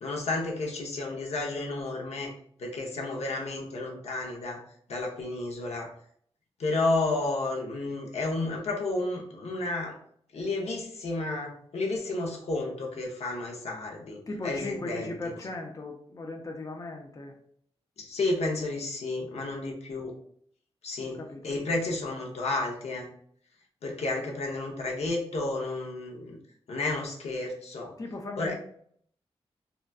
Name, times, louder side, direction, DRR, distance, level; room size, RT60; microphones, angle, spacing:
voice 1, 0.0-2.3 2.6-4.6 4.9-5.9 6.6-9.9 10.3-15.1 18.0-20.1 20.8-21.2 21.4-23.1 23.8-26.4 26.7-27.9 28.4-28.5, left 2 dB, 75° left, -1 dB, 0.7 m, -31 dB
voice 2, 14.3-17.3 21.0-21.5 28.0-28.5, left 2 dB, 30° left, 2 dB, 0.5 m, -37 dB
3.9 x 2.2 x 2.3 m, 0.62 s
wide cardioid pair, 80°, 11 cm